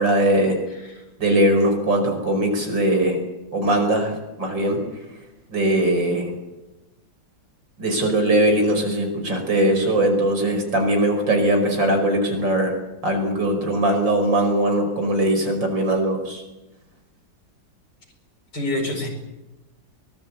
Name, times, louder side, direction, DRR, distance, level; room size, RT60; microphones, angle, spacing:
voice 1, 0.0-0.6 1.2-3.2 3.5-4.8 5.5-6.3 7.8-12.7 13.0-16.4, right 1 dB, 70° right, 4 dB, 6.0 m, -20 dB
voice 2, 0.7-1.0 18.5-19.1, left 1 dB, 60° left, 2 dB, 5.6 m, -27 dB
23.0 x 20.0 x 8.5 m, 1.0 s
omnidirectional pair, 2.1 m